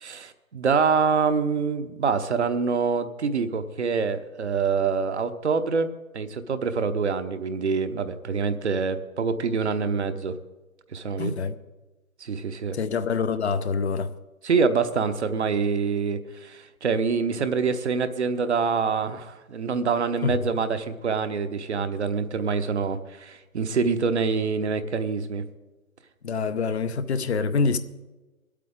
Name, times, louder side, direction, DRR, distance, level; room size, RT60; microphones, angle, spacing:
voice 1, 0.0-10.3 10.9-11.3 12.2-12.8 14.4-25.4, right 5 dB, 55° right, 1.0 m, -25 dB
voice 2, 11.2-11.5 12.7-14.1 20.2-20.4 26.2-27.8, left 5 dB, 50° left, 0.8 m, -25 dB
22.5 x 8.4 x 3.7 m
figure-of-eight pair, 135°, 41 cm